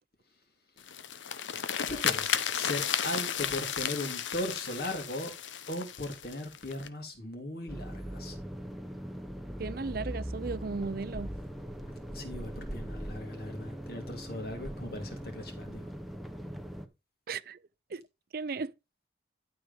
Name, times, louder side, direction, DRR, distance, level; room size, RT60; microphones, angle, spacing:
sound 1, 0.8-6.9, left 8 dB, 85° left, 0.9 m, -33 dB
voice 1, 1.8-5.3 5.7-8.4 12.1-15.9, left 1 dB, 55° left, 3.0 m, -38 dB
sound 2, 7.7-16.9, equal, ahead, 1.0 m, -40 dB
voice 2, 9.6-11.3 17.3-17.6 17.9-18.0 18.3-18.7, right 4 dB, 50° right, 0.5 m, -35 dB
12.5 x 5.0 x 5.2 m
head